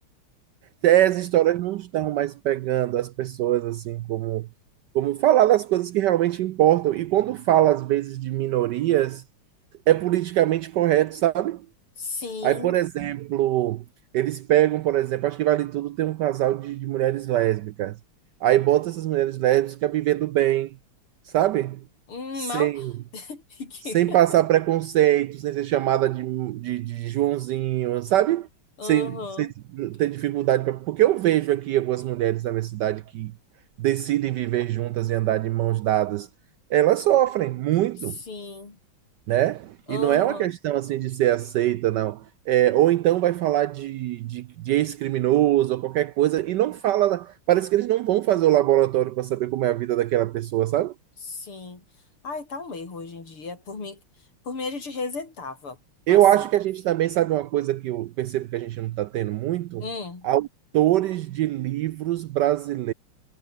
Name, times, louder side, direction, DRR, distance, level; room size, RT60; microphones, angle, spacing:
voice 1, 0.8-4.5 4.9-9.2 9.9-11.6 12.4-13.8 14.1-18.0 18.4-20.7 21.3-21.8 22.4-22.9 23.9-28.5 28.8-29.5 29.7-33.3 33.8-36.3 36.7-38.2 39.3-50.9 56.1-59.8 60.2-60.5 60.7-62.9, right 13 dB, 80° right, 1.0 m, -23 dB
voice 2, 12.0-12.8 22.1-22.8 23.1-24.2 28.8-29.5 38.3-38.8 39.9-40.5 51.2-51.8 52.2-54.0 54.5-55.8 56.1-56.5 59.8-60.3, left 4 dB, 90° left, 5.7 m, -34 dB
omnidirectional pair, 2.3 m